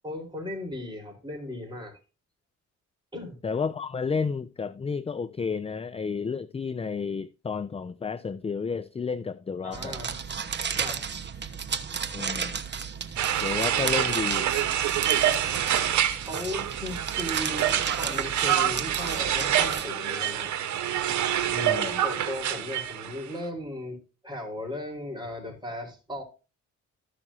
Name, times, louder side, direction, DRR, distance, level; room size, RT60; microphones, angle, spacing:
voice 1, 0.0-2.0 3.1-3.4 9.6-10.2 10.7-11.0 16.2-20.5 21.8-24.0 24.2-26.2, left 1 dB, 15° right, 4.7 m, -36 dB
voice 2, 3.4-10.0 12.1-12.6 13.4-14.5 21.5-22.0, left 5 dB, 20° left, 0.5 m, -31 dB
sound 1, 9.7-19.8, right 6 dB, 35° right, 1.1 m, -34 dB
sound 2, 13.2-23.2, right 10 dB, 70° right, 1.3 m, -27 dB
14.0 x 6.1 x 2.9 m
cardioid pair, 90°, 30 cm